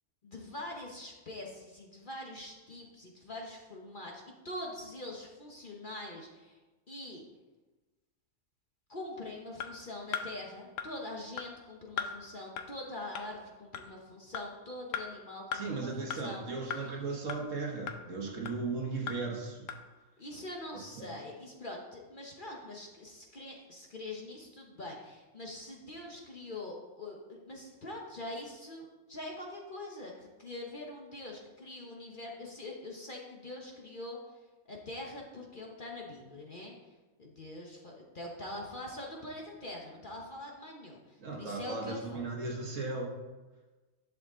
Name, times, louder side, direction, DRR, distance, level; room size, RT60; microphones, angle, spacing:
voice 1, 0.2-6.6 6.9-7.2 8.9-16.4 16.7-16.8 20.2-34.2 34.7-36.8 37.2-42.0, left 1 dB, 35° left, -1 dB, 1.1 m, -44 dB
sound 1, 9.6-9.7 10.1-10.3 10.8-10.9 11.4-11.5 12.0-12.1 12.6-12.7 13.2-13.3 13.7-13.9 14.3-14.5 14.9-15.0 15.5-15.6 16.1-16.2 16.7-16.8 17.3-17.4 17.9-18.0 18.5-18.6 19.1-19.2 19.7-19.8, left 8 dB, 65° left, 1.0 m, -36 dB
voice 2, 15.5-19.7 20.7-21.2 41.2-43.2, right 3 dB, 60° right, 0 dB, 1.7 m, -37 dB
10.5 x 6.4 x 3.8 m, 1.2 s
omnidirectional pair, 1.6 m